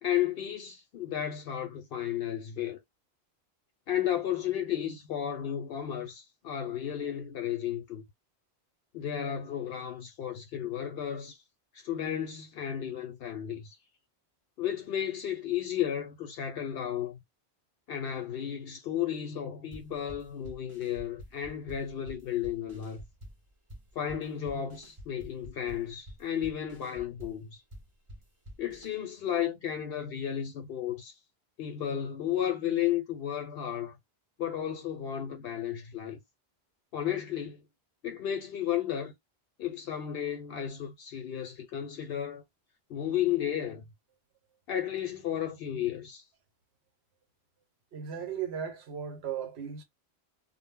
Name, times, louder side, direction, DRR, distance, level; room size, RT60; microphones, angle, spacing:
voice 1, 0.0-2.8 3.9-8.0 8.9-11.4 11.7-13.8 14.6-17.2 17.9-23.0 24.0-27.6 28.6-31.1 31.6-34.0 34.4-36.2 36.9-37.6 38.0-39.1 39.6-42.4 42.9-43.8 44.7-46.2, left 10 dB, 70° left, 0.8 m, -33 dB
sound 1, 19.7-28.9, equal, 35° right, 0.7 m, -48 dB
voice 2, 47.9-49.8, right 8 dB, 70° right, 1.0 m, -36 dB
2.1 x 2.0 x 3.4 m
omnidirectional pair, 1.1 m